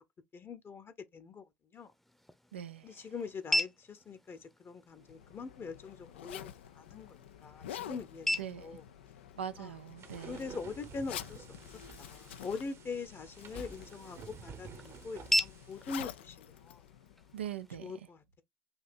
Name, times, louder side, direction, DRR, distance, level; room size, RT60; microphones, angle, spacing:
voice 1, 0.3-1.4 1.7-1.9 2.8-6.5 6.7-7.2 7.4-8.8 9.6-9.7 10.2-11.5 12.0-16.8 17.8-18.4, left 4 dB, 40° left, 0.9 m, -43 dB
sound 1, 1.7-17.7, equal, 5° left, 0.7 m, -40 dB
voice 2, 2.5-3.1 8.4-8.7 9.4-10.5 17.3-18.1, right 9 dB, 85° right, 0.3 m, -42 dB
Zipper (clothing), 4.9-17.6, left 10 dB, 80° left, 0.3 m, -49 dB
sound 2, 10.0-15.9, right 6 dB, 50° right, 0.8 m, -51 dB
5.4 x 2.8 x 2.5 m
hypercardioid pair, 55°, 6 cm